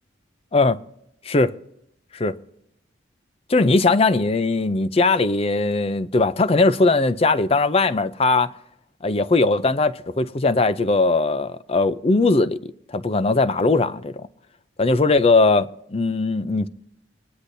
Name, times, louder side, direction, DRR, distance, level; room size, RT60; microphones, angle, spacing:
voice 1, 3.5-8.5 9.0-12.6 12.9-14.2 14.8-16.7, left 3 dB, 30° left, 0.5 m, -19 dB
22.0 x 9.9 x 2.7 m
head